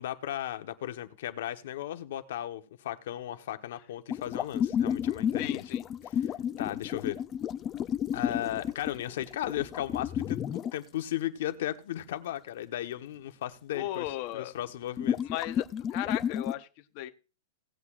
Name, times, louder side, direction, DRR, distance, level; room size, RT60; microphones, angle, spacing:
voice 1, 0.0-5.6 6.0-7.2 8.1-14.1 14.3-15.2, left 12 dB, 65° left, 1.1 m, -36 dB
sound 1, 4.1-10.8 14.1-14.2 15.0-16.5, left 9 dB, 20° left, 0.4 m, -31 dB
voice 2, 5.4-5.8 13.7-14.5 15.2-16.7 16.9-17.1, left 15 dB, 40° left, 0.9 m, -36 dB
18.0 x 8.1 x 2.4 m
supercardioid pair, 160°, 0 cm